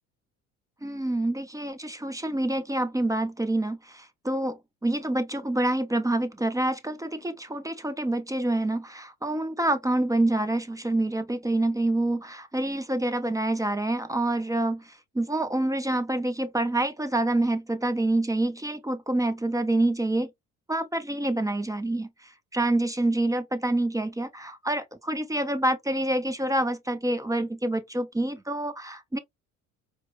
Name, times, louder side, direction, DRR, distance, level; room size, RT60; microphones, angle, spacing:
voice 1, 0.8-20.3 20.7-29.2, right 1 dB, 10° right, 0.5 m, -27 dB
4.4 x 2.1 x 2.3 m
hypercardioid pair, 60°, 43 cm